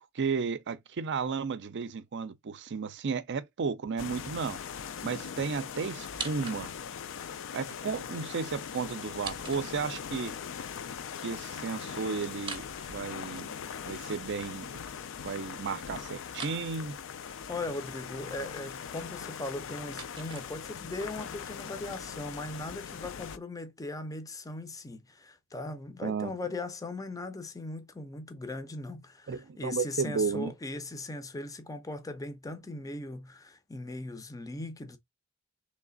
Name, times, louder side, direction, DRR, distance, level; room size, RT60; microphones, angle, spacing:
voice 1, 0.1-4.6 5.0-6.7 7.5-10.3 11.2-13.5 13.8-14.7 15.2-16.9 26.0-26.4 29.3-30.5, right 5 dB, 55° right, 0.5 m, -33 dB
sound 1, 4.0-23.4, left 7 dB, 65° left, 0.4 m, -41 dB
sound 2, 6.0-7.0 9.0-10.2 12.3-13.7 16.3-16.6 19.4-21.0, right 5 dB, 25° right, 0.7 m, -44 dB
voice 2, 17.5-35.0, left 2 dB, 15° left, 0.6 m, -39 dB
3.2 x 3.2 x 3.8 m
head